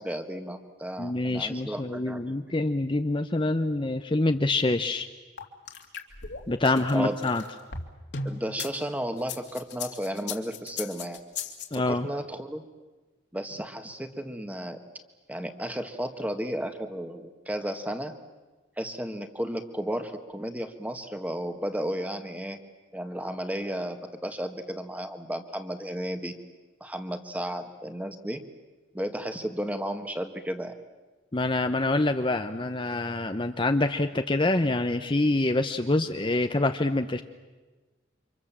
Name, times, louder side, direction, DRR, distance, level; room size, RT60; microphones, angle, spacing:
voice 1, 0.0-2.4 6.9-7.2 8.2-11.2 11.9-12.6 13.3-14.8 15.3-18.1 18.8-22.6 22.9-26.3 26.8-28.4 28.9-30.7, equal, 10° right, 7 dB, 1.6 m, -33 dB
voice 2, 1.0-5.1 6.5-7.4 11.7-12.1 31.3-37.2, left 2 dB, 25° left, 7 dB, 0.8 m, -26 dB
sound 1, 5.4-8.7 9.2-11.8, left 5 dB, 60° left, 2.5 m, -36 dB
29.5 x 26.0 x 7.4 m, 1.2 s
head